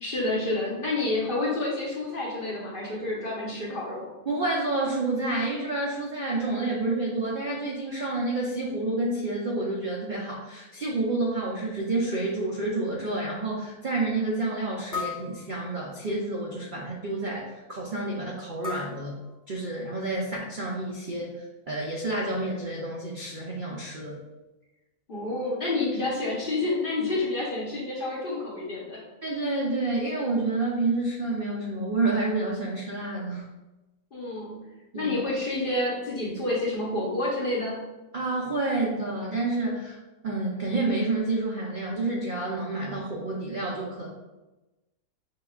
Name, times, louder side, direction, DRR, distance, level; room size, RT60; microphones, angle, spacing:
voice 1, 0.0-4.1 25.1-29.0 34.1-34.6 34.9-37.8, left 2 dB, 40° left, -5 dB, 1.0 m, -29 dB
voice 2, 4.3-19.2 19.5-21.3 21.7-24.2 29.2-33.4 34.9-35.1 38.1-40.0 40.2-44.1, right 2 dB, 55° right, -3 dB, 0.5 m, -29 dB
sound 1, 12.3-12.4 13.0-13.1 14.9-16.1 18.6-19.9, left 5 dB, 25° left, 0.4 m, -37 dB
4.9 x 3.4 x 2.3 m, 1.1 s
omnidirectional pair, 1.6 m